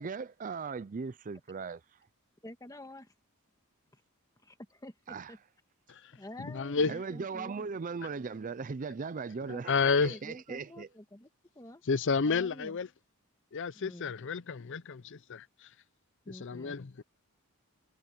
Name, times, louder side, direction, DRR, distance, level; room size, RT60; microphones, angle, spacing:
voice 1, 0.0-1.8 5.1-5.3 6.9-10.9, right 5 dB, 35° right, 0.4 m, -38 dB
voice 2, 2.4-3.1 3.9-4.0 4.4-5.4 6.1-7.7 9.5-11.3 11.6-11.8 12.2-12.8 13.8-14.1 16.3-16.8, left 1 dB, 15° left, 1.8 m, -48 dB
voice 3, 6.4-6.9 9.7-10.2 11.8-12.9 13.5-15.7 16.3-17.0, left 4 dB, 55° left, 0.6 m, -31 dB
head